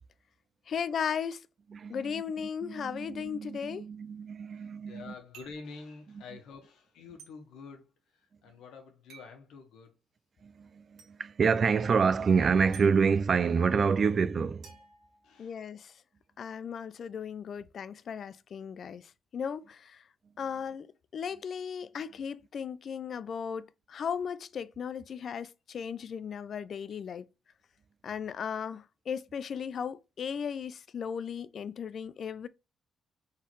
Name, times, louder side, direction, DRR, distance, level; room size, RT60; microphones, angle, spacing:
voice 1, 0.7-1.4 1.9-3.9 15.4-15.9 16.4-20.0 20.4-27.3 28.0-32.5, left 7 dB, 45° left, 0.3 m, -36 dB
voice 2, 1.7-2.2 2.6-5.1 10.4-14.8, right 5 dB, 35° right, 0.3 m, -27 dB
voice 3, 4.5-10.0 15.2-15.6, left 4 dB, 90° left, 1.3 m, -48 dB
sound 1, 5.3-5.7 7.2-7.3 9.1-9.4 11.0-11.1 12.7-12.9 14.6-15.7, right 6 dB, 75° right, 1.8 m, -53 dB
4.3 x 3.7 x 3.1 m
cardioid pair, 160°, 0 cm